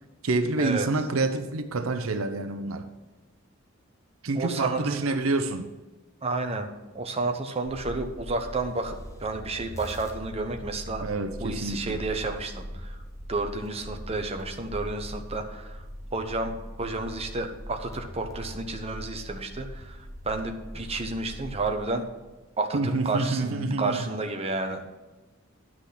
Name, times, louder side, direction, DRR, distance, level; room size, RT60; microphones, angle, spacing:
voice 1, 0.2-2.9 4.2-5.7 11.0-12.0 22.7-24.1, right 3 dB, 85° right, 0.7 m, -27 dB
voice 2, 4.3-5.0 6.2-11.0 11.4-13.0 13.3-15.8 16.1-16.5 16.8-22.0 22.6-24.9, right 3 dB, 30° right, 0.9 m, -31 dB
sound 1, 7.7-21.9, equal, 15° left, 1.6 m, -41 dB
10.5 x 6.1 x 5.8 m
head